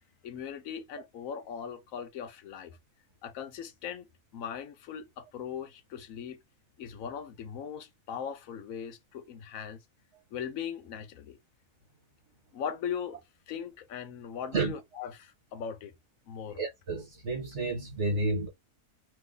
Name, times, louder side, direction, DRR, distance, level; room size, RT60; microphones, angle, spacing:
voice 1, 0.2-2.8 3.2-4.1 4.3-6.4 6.8-9.8 10.3-11.4 12.5-13.2 13.5-15.9 16.3-16.6, left 8 dB, 65° left, 1.1 m, -39 dB
voice 2, 16.6-18.5, right 3 dB, 50° right, 1.8 m, -30 dB
3.4 x 3.0 x 3.8 m
omnidirectional pair, 1.6 m